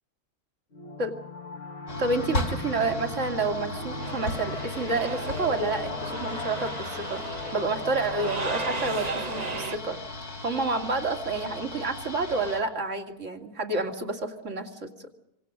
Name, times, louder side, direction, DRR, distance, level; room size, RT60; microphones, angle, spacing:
sound 1, 0.7-11.1, left 4 dB, 45° left, 1.7 m, -39 dB
sound 2, 1.9-12.6, left 1 dB, 85° left, 4.4 m, -36 dB
voice 1, 2.0-7.2 7.5-10.0 10.4-15.1, right 3 dB, 55° right, 4 dB, 2.7 m, -29 dB
sound 3, 4.0-9.8, right 4 dB, 30° right, 1.0 m, -36 dB
27.0 x 25.0 x 6.3 m, 0.85 s
omnidirectional pair, 1.5 m